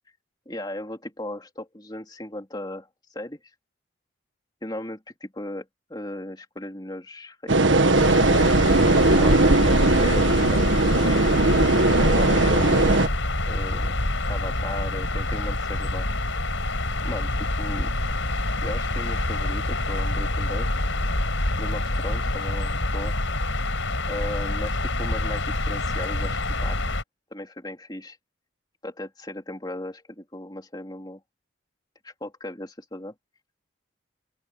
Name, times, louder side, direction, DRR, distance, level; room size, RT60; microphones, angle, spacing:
voice 1, 0.4-3.4 4.6-8.0 8.3-13.1 13.5-14.0 14.3-16.1 17.0-17.9 18.6-20.7 21.6-23.1 24.1-27.0 27.3-28.2 28.8-31.2 32.0-33.1, left 1 dB, 20° left, 3.2 m, -37 dB
sound 1, 7.5-13.1, right 2 dB, 75° right, 1.6 m, -19 dB
sound 2, 7.9-27.0, left 1 dB, 80° left, 5.6 m, -26 dB
open air
head